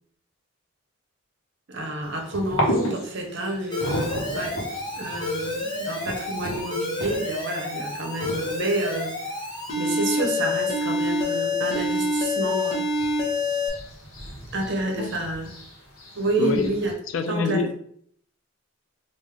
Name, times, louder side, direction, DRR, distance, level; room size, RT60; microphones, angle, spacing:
voice 1, 1.7-4.6 5.0-9.1 9.8-12.9 14.5-15.5 16.2-16.9 17.3-17.7, right 2 dB, 60° right, 2 dB, 0.9 m, -29 dB
sound 1, 2.0-16.9, equal, 90° left, 1.0 m, -35 dB
Alarm, 3.7-13.7, left 2 dB, 20° left, 0.9 m, -28 dB
voice 2, 16.4-16.8 17.1-17.7, left 3 dB, 65° left, 7 dB, 0.4 m, -26 dB
3.6 x 2.6 x 3.1 m, 0.63 s
head